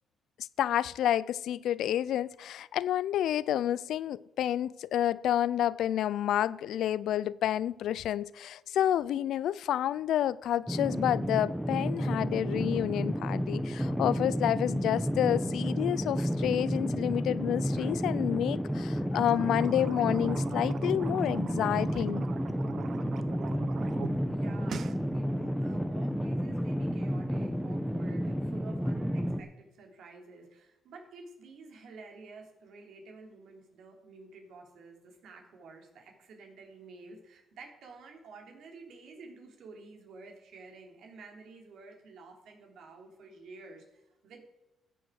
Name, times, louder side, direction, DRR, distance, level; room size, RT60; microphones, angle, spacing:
voice 1, 0.6-22.3, left 11 dB, 80° left, 0.4 m, -29 dB
sound 1, 10.7-29.4, equal, ahead, 1.1 m, -31 dB
sound 2, 19.0-24.1 24.4-25.0, right 7 dB, 60° right, 0.7 m, -42 dB
voice 2, 24.3-44.4, right 3 dB, 75° right, 3.2 m, -50 dB
13.0 x 7.9 x 6.4 m
cardioid pair, 90°, 0 cm